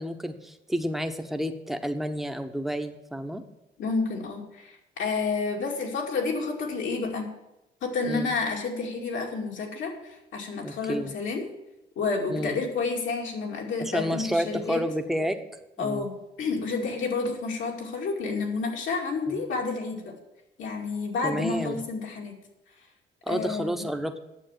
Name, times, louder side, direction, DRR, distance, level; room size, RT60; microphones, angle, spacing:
voice 1, 0.0-3.4 8.0-8.3 10.6-11.2 12.3-12.6 13.8-16.1 19.3-19.4 21.2-21.8 23.3-24.2, equal, ahead, 6 dB, 1.0 m, -30 dB
voice 2, 3.8-7.3 7.8-11.4 12.0-14.8 15.8-20.1 20.6-22.3 23.3-23.8, left 4 dB, 75° left, 0 dB, 2.5 m, -30 dB
9.3 x 7.2 x 7.3 m, 0.91 s
cardioid pair, 90°, 20 cm